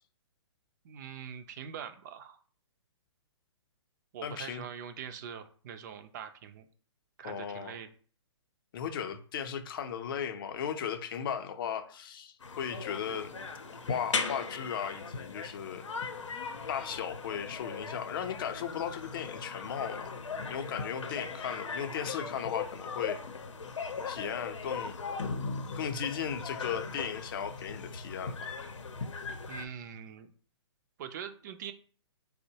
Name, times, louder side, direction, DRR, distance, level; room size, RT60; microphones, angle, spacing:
voice 1, 0.8-2.4 4.1-6.7 7.2-7.9 29.5-30.3 31.0-31.7, right 8 dB, 40° right, 8 dB, 0.4 m, -43 dB
voice 2, 4.2-4.6 7.2-7.8 8.7-13.3 13.9-15.9 16.7-20.2 20.5-23.2 24.1-25.0 25.8-28.6, left 8 dB, 50° left, 7 dB, 0.5 m, -36 dB
sound 1, 12.4-29.6, left 4 dB, 85° left, 0.6 m, -39 dB
4.3 x 2.1 x 2.7 m, 0.44 s
hypercardioid pair, 140°, 15 cm